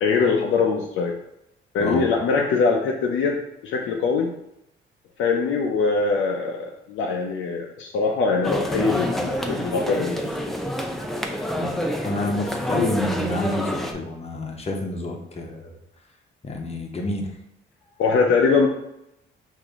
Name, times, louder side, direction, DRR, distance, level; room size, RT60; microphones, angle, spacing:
voice 1, 0.0-1.2 1.7-4.3 5.2-10.2 18.0-18.7, left 4 dB, 80° left, 0 dB, 0.6 m, -22 dB
sound 1, 8.4-13.9, equal, ahead, 0.5 m, -27 dB
voice 2, 11.6-15.8 16.4-17.3, left 2 dB, 30° left, 2 dB, 0.9 m, -28 dB
5.0 x 2.7 x 3.6 m, 0.84 s
cardioid pair, 90°, 20 cm